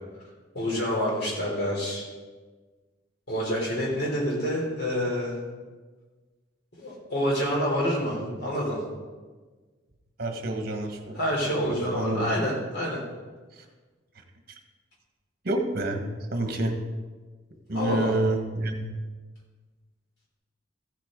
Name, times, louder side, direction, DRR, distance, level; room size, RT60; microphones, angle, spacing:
voice 1, 0.5-2.1 3.3-5.4 6.8-8.8 11.1-13.0 17.7-18.1, equal, 60° left, -3 dB, 3.3 m, -27 dB
voice 2, 10.2-12.3 13.6-13.7 15.4-16.0 16.3-16.8 17.7-18.9, right 1 dB, 55° right, 4 dB, 1.4 m, -29 dB
14.5 x 7.7 x 3.8 m, 1.4 s
head